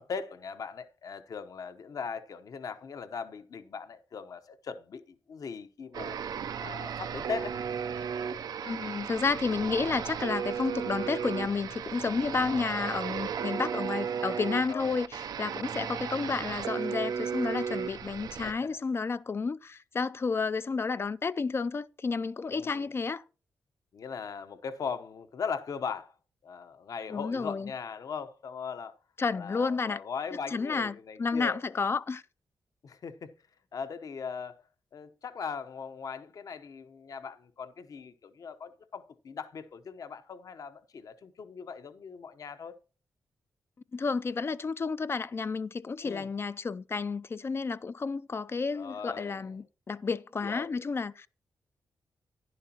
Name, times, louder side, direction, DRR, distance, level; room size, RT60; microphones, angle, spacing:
voice 1, 0.0-6.2 6.6-7.6 14.7-15.0 18.3-18.8 22.5-22.9 23.9-26.1 26.4-28.9 29.3-31.6 32.8-33.3 33.7-34.6 34.9-42.7 46.0-46.3 48.7-49.5 50.4-50.7, left 6 dB, 65° left, 0.9 m, -39 dB
sound 1, 5.9-18.5, right 7 dB, 80° right, 0.5 m, -35 dB
voice 2, 8.6-23.2 27.1-27.7 29.2-30.0 30.5-32.2 43.9-51.3, left 4 dB, 40° left, 0.4 m, -31 dB
11.0 x 10.5 x 2.9 m
cardioid pair, 85°, 7 cm